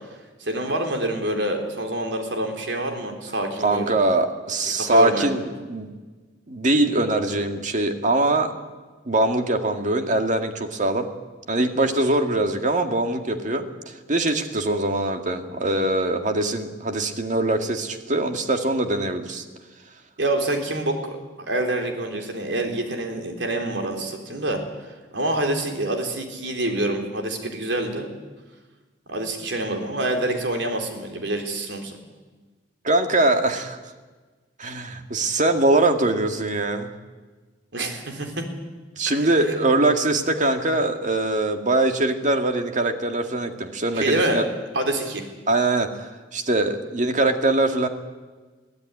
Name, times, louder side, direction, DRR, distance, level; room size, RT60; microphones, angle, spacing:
voice 1, 0.4-4.0 4.8-5.3 20.2-24.6 25.1-28.1 29.1-32.0 37.7-38.5 39.1-39.5 43.9-44.4 44.7-45.2, right 1 dB, 75° right, 4 dB, 3.8 m, -26 dB
voice 2, 3.6-5.9 6.5-8.5 9.1-11.1 11.5-19.4 32.8-33.8 34.6-36.9 39.0-44.4 45.5-47.9, right 2 dB, 45° right, 6 dB, 2.0 m, -22 dB
23.0 x 16.0 x 9.7 m, 1.3 s
head